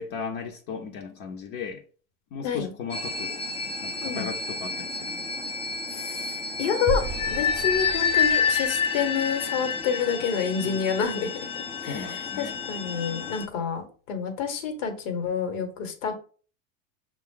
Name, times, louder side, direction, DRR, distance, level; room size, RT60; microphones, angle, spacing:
voice 1, 0.0-1.8 2.3-3.4 3.8-5.5 10.6-11.0 11.8-12.6, left 5 dB, 50° left, 1 dB, 0.8 m, -37 dB
sound 1, 2.9-13.5, left 6 dB, 15° left, 0.4 m, -29 dB
voice 2, 5.9-11.3 11.8-16.1, left 6 dB, 70° left, 6 dB, 1.3 m, -29 dB
sound 2, 6.9-9.9, right 3 dB, 30° right, 0.6 m, -35 dB
5.4 x 2.4 x 3.7 m, 0.41 s
supercardioid pair, 110°, 39 cm